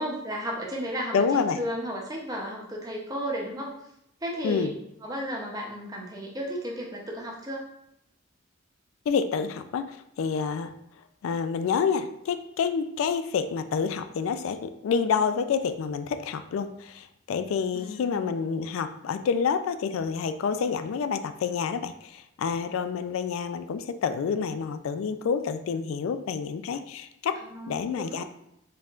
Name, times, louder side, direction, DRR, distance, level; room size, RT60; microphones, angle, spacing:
voice 1, 0.0-3.7 4.2-4.7 5.0-7.7 17.7-18.2 27.3-28.2, equal, 15° right, -1 dB, 0.7 m, -34 dB
voice 2, 1.1-1.6 4.4-4.7 9.1-10.7 11.2-27.4 27.7-28.2, left 6 dB, 75° left, 10 dB, 0.3 m, -28 dB
4.5 x 3.6 x 2.4 m, 0.80 s
head